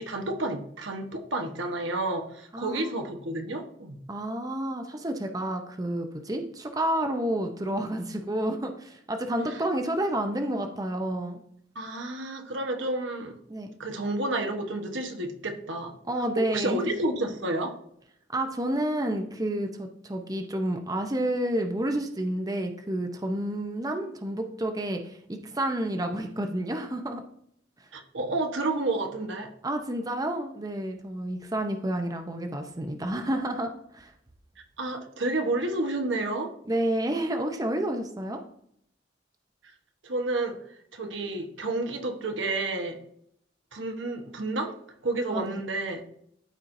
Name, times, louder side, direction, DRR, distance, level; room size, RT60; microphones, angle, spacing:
voice 1, 0.0-4.0 9.5-9.6 11.7-13.4 13.8-15.9 16.5-17.7 27.9-29.5 34.8-36.5 40.0-40.6 40.9-43.0 43.7-44.7 45.0-46.0, right 2 dB, 85° right, 4 dB, 1.1 m, -30 dB
voice 2, 2.5-3.0 4.1-11.4 13.5-13.7 16.1-16.9 18.3-25.2 25.5-27.2 29.6-34.1 36.7-38.4 45.3-45.6, right 1 dB, 20° right, 5 dB, 0.6 m, -30 dB
13.0 x 4.4 x 2.6 m, 0.69 s
head